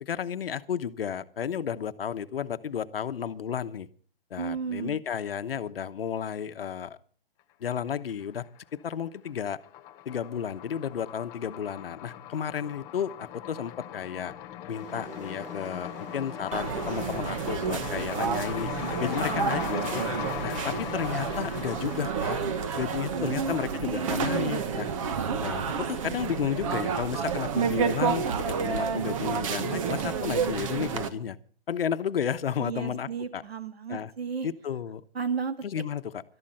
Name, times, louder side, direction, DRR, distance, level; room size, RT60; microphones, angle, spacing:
voice 1, 0.0-3.9 4.3-7.0 7.6-8.5 8.7-9.6 10.0-14.3 14.7-18.7 19.0-20.0 20.4-22.4 22.7-24.9 25.4-31.4 31.7-33.4 33.9-34.1 34.4-35.0 35.6-36.2, left 8 dB, 70° left, 11 dB, 1.2 m, -32 dB
voice 2, 4.4-5.0 19.2-19.8 23.1-23.5 23.8-24.6 32.6-34.5 35.1-35.6, right 6 dB, 90° right, 9 dB, 2.1 m, -33 dB
sound 1, 7.9-8.6 8.9-24.1, left 12 dB, 10° left, 0.6 m, -40 dB
sound 2, 14.7-17.3 18.0-26.8, right 4 dB, 65° right, 4.2 m, -48 dB
sound 3, 16.5-31.1, right 6 dB, 35° right, 1.3 m, -30 dB
19.0 x 13.0 x 4.3 m, 0.43 s
hypercardioid pair, 155°, 30 cm